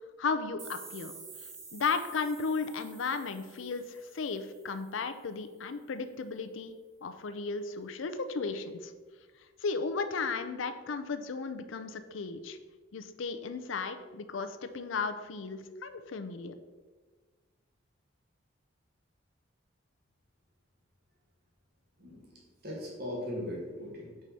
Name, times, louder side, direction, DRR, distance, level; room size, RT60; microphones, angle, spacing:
voice 1, 0.2-1.1 1.7-6.7 7.0-8.9 9.6-12.6 12.9-16.5, left 4 dB, 75° left, 9 dB, 0.5 m, -35 dB
sound 1, 0.6-5.3, right 4 dB, 70° right, 1.3 m, -50 dB
voice 2, 22.0-24.2, left 1 dB, 50° right, -4 dB, 1.4 m, -39 dB
4.8 x 4.3 x 5.3 m, 1.4 s
head